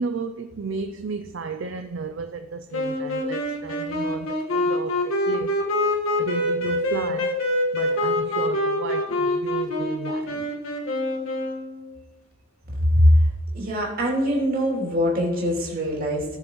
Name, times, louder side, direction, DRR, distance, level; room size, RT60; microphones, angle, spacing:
voice 1, 0.0-5.5 6.2-7.4 7.7-10.5, right 4 dB, 60° right, 0.5 m, -33 dB
sound 1, 2.7-11.9, left 1 dB, 80° left, 1.6 m, -25 dB
voice 2, 13.5-16.3, equal, 45° right, 3.0 m, -22 dB
18.5 x 6.6 x 3.1 m
head